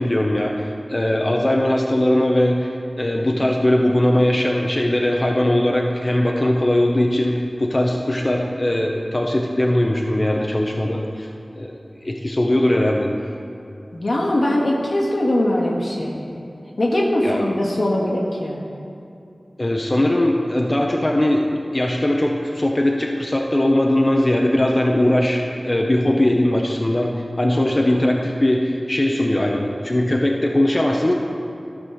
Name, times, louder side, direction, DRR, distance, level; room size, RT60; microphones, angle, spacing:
voice 1, 0.0-2.7 3.0-11.3 11.5-13.1 17.2-17.5 19.6-31.1, left 1 dB, 35° left, 0 dB, 0.8 m, -20 dB
voice 2, 13.9-16.2 16.8-18.6, left 1 dB, 85° left, -4 dB, 1.8 m, -21 dB
13.0 x 5.3 x 6.3 m, 2.7 s
wide cardioid pair, 65°, 0 cm